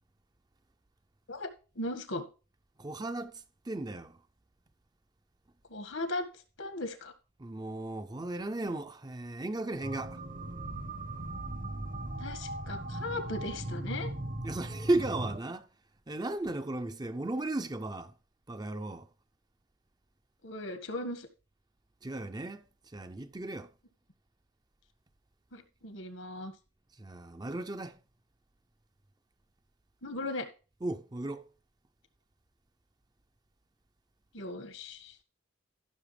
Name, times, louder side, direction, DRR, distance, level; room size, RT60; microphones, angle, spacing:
voice 1, 1.7-2.2 5.7-6.2 6.6-7.1 12.2-14.1 20.4-21.3 25.5-26.5 30.0-30.5 34.3-35.1, left 2 dB, 80° left, 1.7 m, -37 dB
voice 2, 2.8-4.2 7.4-10.2 14.4-15.7 16.1-18.1 18.5-19.1 22.0-22.6 22.9-23.7 27.0-28.0 30.8-31.5, right 2 dB, 20° right, 0.5 m, -35 dB
sound 1, 9.8-15.4, right 1 dB, 40° right, 0.9 m, -38 dB
15.0 x 6.6 x 3.3 m
head